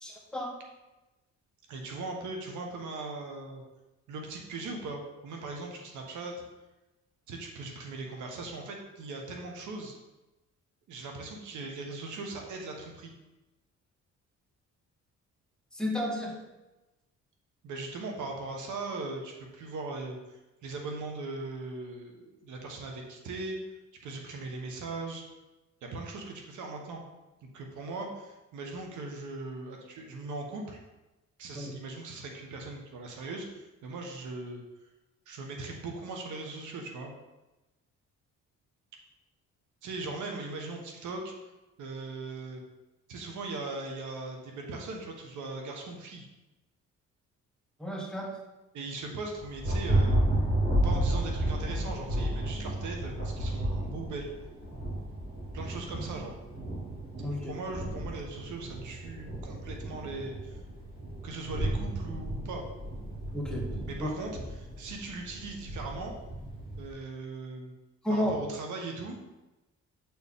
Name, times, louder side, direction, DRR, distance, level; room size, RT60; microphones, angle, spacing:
voice 1, 0.0-0.5 15.7-16.4 31.5-31.7 47.8-48.4 57.2-57.5 63.3-63.7 64.0-64.1 68.0-68.3, left 1 dB, 5° left, -2 dB, 1.4 m, -32 dB
voice 2, 1.7-3.6 4.1-6.3 7.3-9.9 10.9-13.1 17.6-23.6 24.0-25.2 25.8-27.0 27.5-30.8 31.4-34.6 35.3-37.1 39.8-41.3 41.8-42.6 43.1-46.3 48.7-50.2 50.8-54.3 55.5-56.3 57.3-60.6 61.2-62.6 63.9-66.1 66.8-67.7 68.1-69.2, right 3 dB, 80° right, 2 dB, 1.2 m, -39 dB
Thunder, 49.4-66.9, right 1 dB, 45° right, 2.2 m, -32 dB
7.9 x 4.5 x 3.6 m, 1.0 s
cardioid pair, 90°, 30 cm